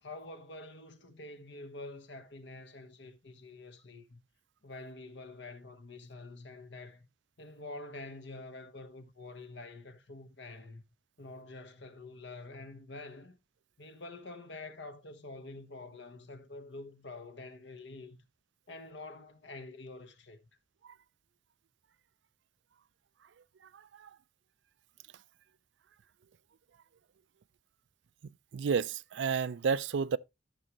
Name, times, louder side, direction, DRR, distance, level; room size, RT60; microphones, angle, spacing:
voice 1, 0.0-4.2 4.6-7.1 7.4-10.8 11.2-13.4 13.8-18.2 18.7-20.4, left 2 dB, 75° left, 1.3 m, -47 dB
voice 2, 23.7-24.1 28.5-30.2, right 6 dB, 80° right, 0.4 m, -31 dB
13.5 x 6.2 x 3.0 m
head